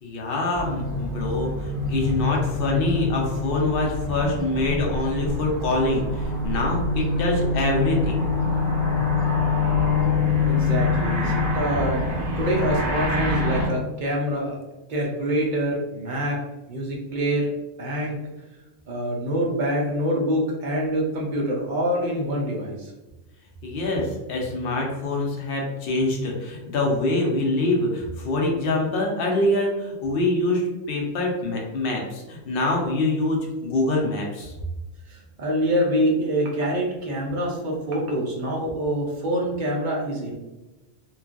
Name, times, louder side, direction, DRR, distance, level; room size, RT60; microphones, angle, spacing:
voice 1, 0.0-8.2 23.6-34.5, left 2 dB, 60° left, 0 dB, 0.6 m, -25 dB
sound 1, 0.5-13.7, left 3 dB, ahead, 1.3 m, -25 dB
voice 2, 10.4-12.0 12.4-14.6 14.9-16.4 16.7-17.5 17.8-18.2 18.9-22.9 35.1-40.3, equal, 65° right, -3 dB, 0.4 m, -25 dB
3.0 x 2.3 x 2.4 m, 1.0 s
omnidirectional pair, 1.5 m